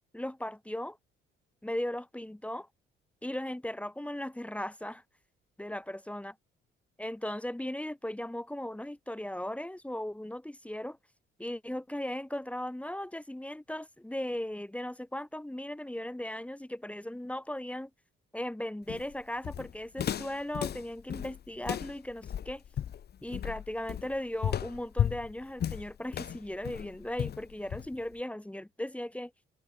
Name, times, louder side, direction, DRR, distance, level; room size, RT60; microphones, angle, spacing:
voice 1, 0.1-1.0 1.6-2.7 3.2-5.0 5.6-6.3 7.0-11.0 11.4-17.9 18.3-22.6 23.2-29.3, left 1 dB, 5° left, 2.4 m, -37 dB
Walk footsteps, 18.9-28.1, left 9 dB, 55° left, 1.1 m, -35 dB
cardioid pair, 90°, 20 cm